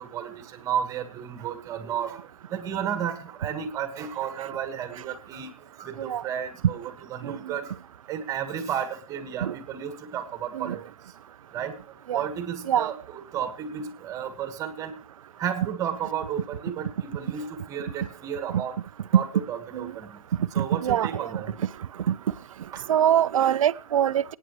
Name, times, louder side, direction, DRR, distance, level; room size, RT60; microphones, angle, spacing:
voice 1, 0.0-5.5 5.8-7.7 8.1-10.8 11.5-11.8 12.1-14.9 15.4-18.8 19.1-20.2 20.5-21.6 22.7-22.8, right 8 dB, 15° right, 1.6 m, -33 dB
voice 2, 20.6-21.3 22.9-24.2, right 10 dB, 65° right, 0.5 m, -24 dB
25.5 x 9.1 x 3.1 m
hypercardioid pair, 140°, 18 cm